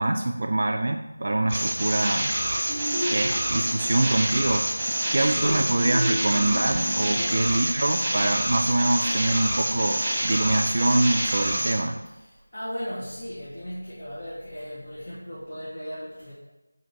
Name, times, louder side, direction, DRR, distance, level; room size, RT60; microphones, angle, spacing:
voice 1, 0.0-2.3 3.1-4.7 5.1-12.0, right 2 dB, 50° right, 4 dB, 0.4 m, -24 dB
sound 1, 1.5-11.8, right 1 dB, 10° right, 1.2 m, -27 dB
sound 2, 2.7-3.9 5.2-7.4, equal, 30° left, 1.1 m, -33 dB
voice 2, 5.1-5.7 6.9-7.4 7.8-7.9 12.1-16.3, equal, 55° left, -9 dB, 2.0 m, -36 dB
6.4 x 4.4 x 4.0 m, 1.1 s
figure-of-eight pair, 170°, 0 cm